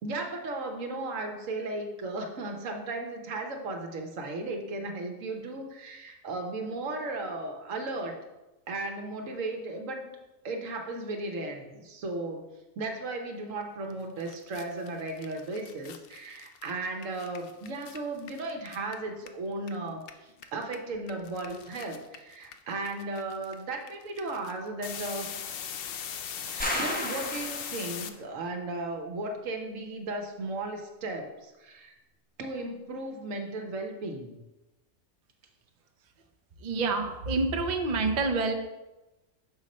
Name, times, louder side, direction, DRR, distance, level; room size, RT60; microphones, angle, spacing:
voice 1, 0.0-8.2 8.7-10.1 10.4-12.4 12.8-25.3 26.4-31.9 32.4-34.4, right 2 dB, 70° right, 3 dB, 1.3 m, -35 dB
sound 1, 13.9-14.0 14.2-19.7 20.0-28.1, left 8 dB, 65° left, 0.6 m, -40 dB
sound 2, 26.6-28.1, equal, 10° left, 0.7 m, -33 dB
voice 2, 36.6-38.5, right 3 dB, 45° right, 4 dB, 0.6 m, -27 dB
6.3 x 5.2 x 4.2 m, 1.0 s
omnidirectional pair, 1.4 m